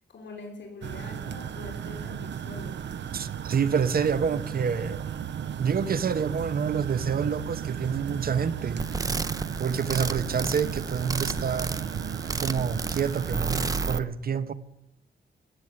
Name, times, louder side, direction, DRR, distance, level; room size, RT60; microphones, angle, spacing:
voice 1, 0.1-2.9, left 3 dB, 75° left, 3.4 m, -43 dB
sound 1, 0.8-14.0, right 9 dB, 70° right, 0.7 m, -35 dB
voice 2, 3.1-5.1 5.6-8.8 9.6-11.7 12.4-14.5, right 6 dB, 55° right, 0.9 m, -28 dB
sound 2, 8.8-14.0, right 3 dB, 20° right, 0.6 m, -32 dB
16.0 x 7.2 x 9.6 m
wide cardioid pair, 120°, 19 cm